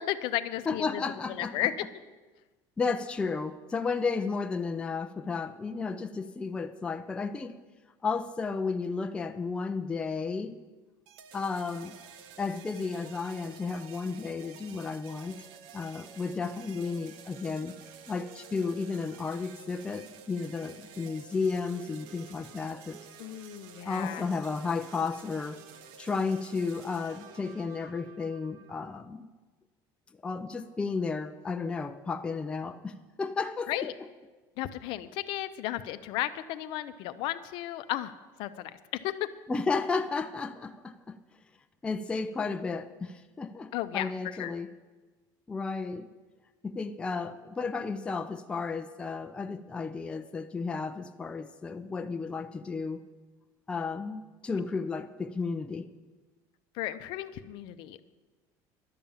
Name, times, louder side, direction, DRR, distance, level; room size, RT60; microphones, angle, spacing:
voice 1, 0.0-1.0 1.3-1.7 23.2-24.2 33.7-33.9 34.6-38.1 38.4-38.7 39.0-39.3 43.7-44.5 56.7-58.0, left 14 dB, 60° left, 12 dB, 0.6 m, -34 dB
voice 2, 0.7-1.7 2.8-7.6 8.0-10.6 11.3-12.0 12.4-15.5 15.7-17.7 18.1-23.0 23.8-25.6 26.0-29.3 30.2-33.9 39.5-41.2 41.8-44.7 45.5-46.1 46.6-53.0 53.7-55.9, left 4 dB, 10° left, 7 dB, 0.4 m, -33 dB
sound 1, 11.1-29.0, right 7 dB, 75° right, 0.9 m, -51 dB
11.5 x 6.9 x 8.7 m, 1.3 s
cardioid pair, 160°, 9 cm